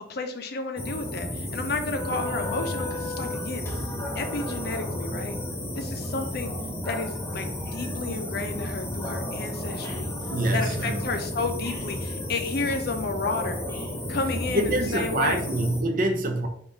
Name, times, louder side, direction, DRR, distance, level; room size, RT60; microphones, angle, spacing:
voice 1, 0.1-3.7 4.1-5.3 5.8-6.5 6.9-10.1 10.5-13.6 14.1-15.4, left 3 dB, 60° left, 7 dB, 0.5 m, -31 dB
sound 1, 0.8-15.8, left 1 dB, 15° left, 0.6 m, -32 dB
voice 2, 10.3-11.0 14.5-16.5, right 1 dB, 50° right, 5 dB, 0.5 m, -25 dB
3.6 x 2.4 x 3.9 m, 0.68 s
head